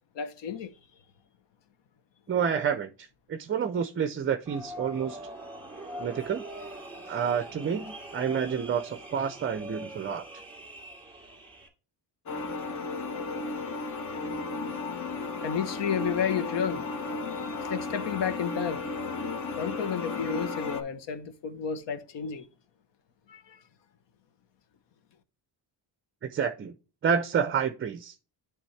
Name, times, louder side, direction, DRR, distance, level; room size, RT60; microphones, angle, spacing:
voice 1, 0.1-0.7 15.2-16.8 17.4-18.8 19.6-22.5 23.3-23.6, left 8 dB, 70° left, 1.1 m, -32 dB
voice 2, 2.3-5.2 6.0-6.4 7.1-10.2 26.2-26.7 27.0-28.1, right 7 dB, 30° right, 0.5 m, -29 dB
sound 1, 4.5-11.7, right 1 dB, 10° right, 2.5 m, -43 dB
sound 2, 12.3-20.8, left 3 dB, 40° left, 1.0 m, -34 dB
10.5 x 3.5 x 3.2 m
cardioid pair, 155°, 44 cm